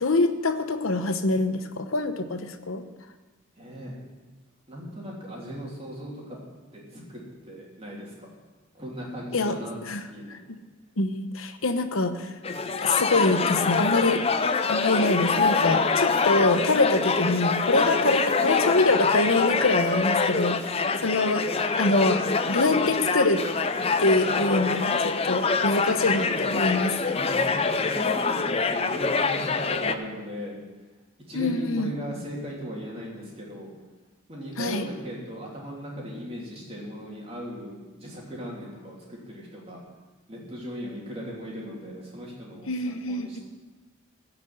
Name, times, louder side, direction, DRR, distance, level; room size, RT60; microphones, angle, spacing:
voice 1, 0.0-2.8 9.3-9.6 9.8-10.0 10.3-10.4 11.0-12.3 12.8-14.2 14.7-22.2 22.5-23.4 24.0-27.0 31.3-32.0 34.6-34.9 42.6-43.4, left 2 dB, 75° left, 8 dB, 1.0 m, -25 dB
voice 2, 3.6-4.0 4.7-6.4 6.7-8.3 8.7-9.7 10.1-10.4 27.1-30.5 31.3-33.7 34.3-39.8 40.3-43.4, equal, 30° right, -4 dB, 3.2 m, -38 dB
sound 1, 12.4-29.9, left 4 dB, 25° left, 0.5 m, -25 dB
15.5 x 6.0 x 8.0 m, 1.2 s
head